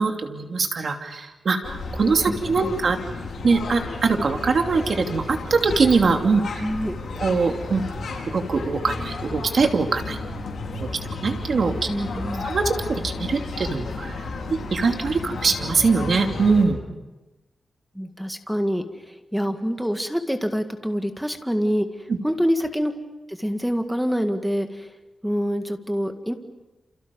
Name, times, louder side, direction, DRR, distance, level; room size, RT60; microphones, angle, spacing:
voice 1, 0.0-3.0 3.4-6.6 7.2-7.8 8.3-10.2 10.8-10.9 11.2-11.9 12.4-14.1 14.5-16.8, right 4 dB, 60° right, 4 dB, 2.8 m, -22 dB
sound 1, 1.6-16.6, left 3 dB, 80° left, 5.4 m, -32 dB
voice 2, 2.3-2.8 6.6-7.0 11.9-12.4 17.9-22.9 23.3-24.9 25.2-26.3, equal, ahead, 6 dB, 1.9 m, -26 dB
29.0 x 28.5 x 5.4 m, 1.1 s
wide cardioid pair, 130°, 0 cm